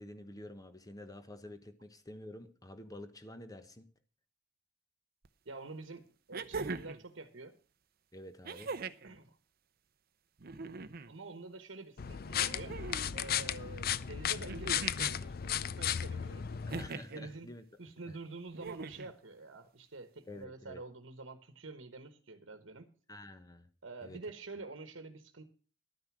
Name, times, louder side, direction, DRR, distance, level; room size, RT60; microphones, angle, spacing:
voice 1, 0.0-3.9 8.1-8.7 16.6-17.6 18.1-18.2 20.3-20.8 23.1-23.7 24.0-24.2, left 1 dB, 20° left, 1.1 m, -49 dB
sound 1, 5.2-5.3 6.3-7.0 8.4-9.1 10.4-11.1 12.3-13.1 14.5-15.2 16.7-17.2 18.5-19.1 20.4-20.5, right 4 dB, 50° right, 0.7 m, -41 dB
voice 2, 5.4-7.6 9.0-9.4 11.1-12.8 13.1-16.5 17.1-17.5 17.8-22.9 23.8-25.4, right 3 dB, 75° right, 1.2 m, -47 dB
sound 2, 12.0-16.9, left 9 dB, 50° left, 0.5 m, -35 dB
12.0 x 9.4 x 6.1 m
head